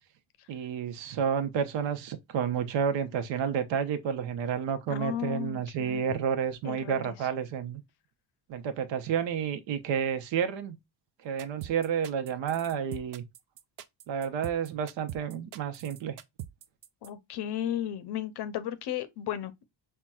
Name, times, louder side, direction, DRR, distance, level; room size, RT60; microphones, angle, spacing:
voice 1, 0.5-7.8 8.5-10.8 11.2-13.2 14.1-16.2, right 7 dB, 75° right, 0.8 m, -30 dB
voice 2, 4.9-6.0 6.6-7.0 17.0-19.6, left 11 dB, 60° left, 0.6 m, -34 dB
sound 1, 11.4-17.1, right 12 dB, 50° right, 0.4 m, -42 dB
5.6 x 2.2 x 2.2 m
cardioid pair, 150°, 45 cm